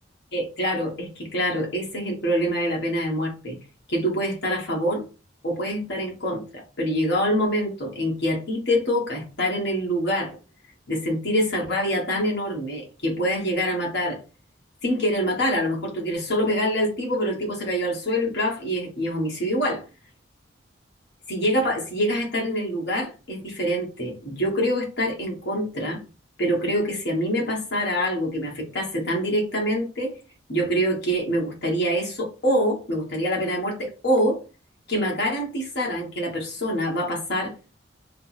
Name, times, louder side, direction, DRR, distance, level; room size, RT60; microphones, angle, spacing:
voice 1, 0.3-3.6 3.9-5.0 5.4-10.4 10.9-14.2 14.8-19.8 21.3-26.0 26.4-30.1 30.5-34.4 34.9-37.5, equal, 60° left, 1.3 m, -25 dB
3.3 x 2.0 x 4.1 m
head